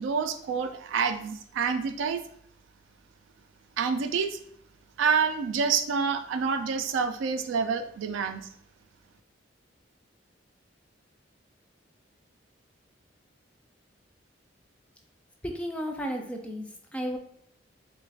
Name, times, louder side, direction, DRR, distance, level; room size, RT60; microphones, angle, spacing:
voice 1, 0.0-2.2 3.8-4.4 5.0-8.4, right 5 dB, 75° right, 8 dB, 0.3 m, -27 dB
voice 2, 15.4-17.2, equal, 5° left, 2 dB, 0.3 m, -33 dB
3.2 x 2.3 x 3.4 m, 0.67 s
head